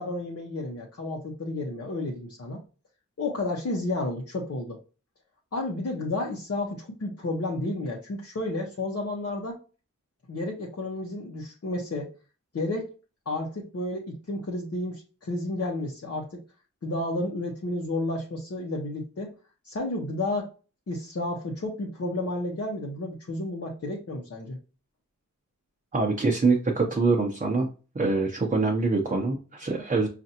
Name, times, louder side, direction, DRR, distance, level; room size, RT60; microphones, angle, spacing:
voice 1, 0.0-2.6 3.2-4.8 5.5-9.6 10.3-12.1 12.5-12.9 13.3-16.4 16.8-19.3 19.6-20.5 20.9-24.6, left 2 dB, 50° left, -2 dB, 0.8 m, -31 dB
voice 2, 25.9-27.7 27.9-30.1, right 3 dB, 25° right, -1 dB, 0.7 m, -24 dB
5.3 x 2.5 x 2.8 m, 0.35 s
wide cardioid pair, 110°, 31 cm